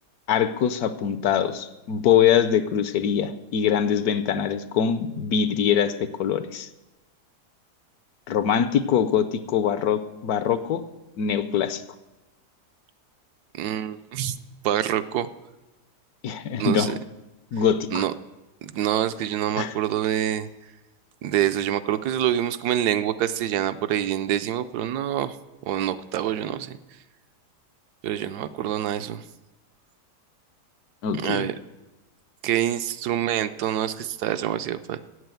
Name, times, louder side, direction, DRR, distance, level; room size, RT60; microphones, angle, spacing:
voice 1, 0.3-6.7 8.3-10.8 11.2-11.8 16.2-16.9 17.5-18.0 19.6-19.7 31.0-31.5, left 8 dB, 70° left, 12 dB, 1.0 m, -23 dB
voice 2, 13.6-14.4 14.6-15.3 16.6-17.0 17.9-18.1 18.6-20.5 21.2-25.4 25.7-26.8 28.0-29.2 31.2-31.5 32.4-35.1, right 11 dB, 75° right, 12 dB, 1.1 m, -26 dB
8.3 x 8.0 x 9.0 m, 1.0 s
omnidirectional pair, 1.8 m